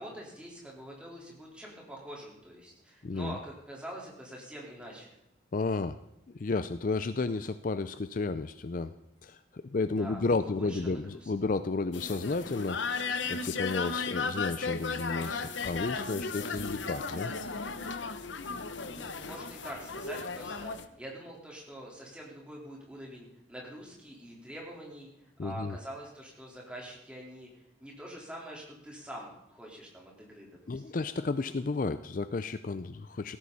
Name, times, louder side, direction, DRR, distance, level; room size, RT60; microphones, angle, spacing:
voice 1, 0.0-5.2 10.0-11.3 18.9-25.1 25.4-27.5 27.8-30.8, right 1 dB, 5° right, -3 dB, 3.9 m, -45 dB
voice 2, 3.0-3.4 5.5-6.0 6.4-8.9 9.2-12.8 13.3-17.3 25.4-25.8 30.7-33.4, left 3 dB, 45° left, 12 dB, 0.4 m, -32 dB
sound 1, 11.9-20.9, left 4 dB, 75° left, 1.0 m, -35 dB
17.5 x 14.5 x 4.1 m, 0.81 s
head